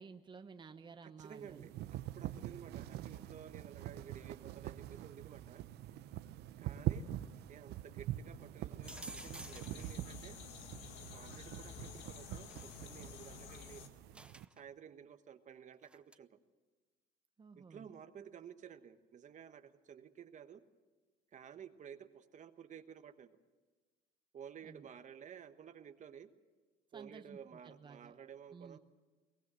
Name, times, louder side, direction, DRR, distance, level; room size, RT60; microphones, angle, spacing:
voice 1, 0.0-1.7 17.4-17.9 24.6-24.9 26.9-27.4 27.6-28.1 28.5-28.8, right 5 dB, 25° right, 8 dB, 1.0 m, -53 dB
voice 2, 1.0-5.7 6.6-7.1 7.5-10.4 11.1-13.8 14.6-16.4 17.5-20.6 21.3-23.4 24.3-26.3 26.9-28.8, right 8 dB, 45° right, 9 dB, 1.2 m, -53 dB
sound 1, 1.2-14.5, right 13 dB, 75° right, 0.8 m, -44 dB
sound 2, 8.8-13.9, left 7 dB, 90° left, 1.8 m, -51 dB
sound 3, 8.9-9.9 12.5-12.8 14.1-14.6 15.8-16.2, right 2 dB, 5° right, 0.6 m, -51 dB
23.0 x 19.0 x 7.7 m, 1.3 s
cardioid pair, 110°, 17 cm